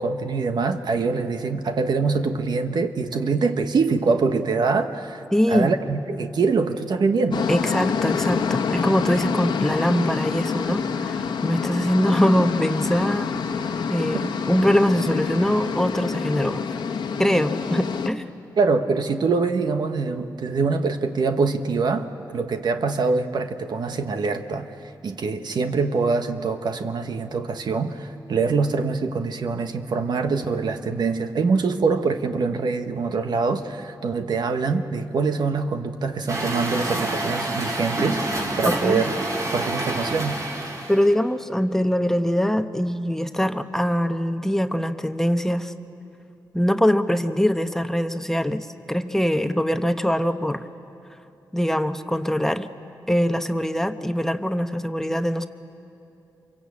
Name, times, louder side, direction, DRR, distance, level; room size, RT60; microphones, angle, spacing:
voice 1, 0.0-7.4 18.6-24.7 25.0-39.1 39.5-40.4, right 4 dB, 70° right, 7 dB, 1.2 m, -24 dB
voice 2, 5.3-5.7 7.5-13.3 13.9-16.7 17.2-18.3 38.6-39.0 40.9-45.7 46.5-50.6 51.5-52.7 53.1-55.5, equal, 5° left, 8 dB, 0.9 m, -23 dB
sound 1, 7.3-18.1, left 6 dB, 80° left, 1.2 m, -27 dB
Truck, 36.3-41.1, right 1 dB, 45° right, 4.0 m, -27 dB
26.5 x 23.0 x 8.5 m, 2.7 s
cardioid pair, 80°, 8 cm